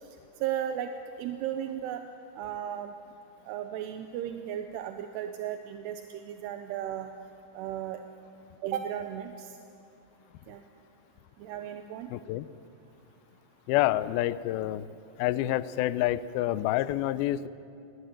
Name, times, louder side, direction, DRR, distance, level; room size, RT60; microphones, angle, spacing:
voice 1, 0.4-0.9 1.2-2.0 2.4-2.9 3.5-7.1 7.5-8.0 8.6-9.5 10.5-10.6 11.4-12.1, right 10 dB, 80° right, 7 dB, 2.8 m, -35 dB
voice 2, 12.1-12.5 13.7-14.9 15.2-17.5, left 14 dB, 90° left, 15 dB, 2.1 m, -28 dB
24.5 x 19.5 x 9.1 m, 2.7 s
omnidirectional pair, 5.2 m